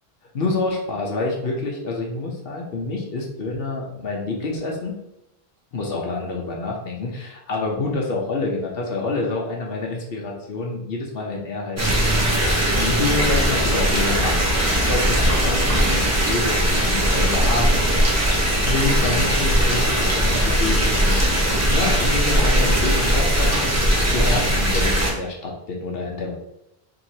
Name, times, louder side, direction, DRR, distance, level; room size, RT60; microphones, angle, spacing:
voice 1, 0.3-5.0 5.7-12.1 12.7-17.9 18.6-23.8 24.1-26.3, left 3 dB, 70° left, -1 dB, 0.9 m, -27 dB
sound 1, 11.8-25.1, equal, 15° right, 0.8 m, -19 dB
4.5 x 2.9 x 2.7 m, 0.86 s
omnidirectional pair, 1.0 m